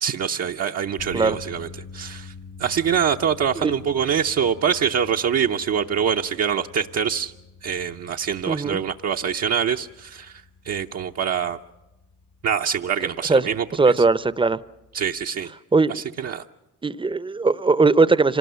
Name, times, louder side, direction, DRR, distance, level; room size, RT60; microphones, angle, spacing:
voice 1, 0.0-1.7 1.9-2.3 2.6-7.3 7.6-10.4 10.7-11.6 12.4-13.6 14.9-15.5 15.9-16.4, right 7 dB, 55° right, 2 dB, 0.8 m, -24 dB
sound 1, 1.0-15.3, left 5 dB, 65° left, 1.9 m, -46 dB
voice 2, 8.5-8.8 13.3-14.6 15.7-16.1 16.8-18.4, right 4 dB, 15° right, 17 dB, 0.7 m, -19 dB
26.0 x 19.0 x 6.9 m, 0.94 s
cardioid pair, 90°, 30 cm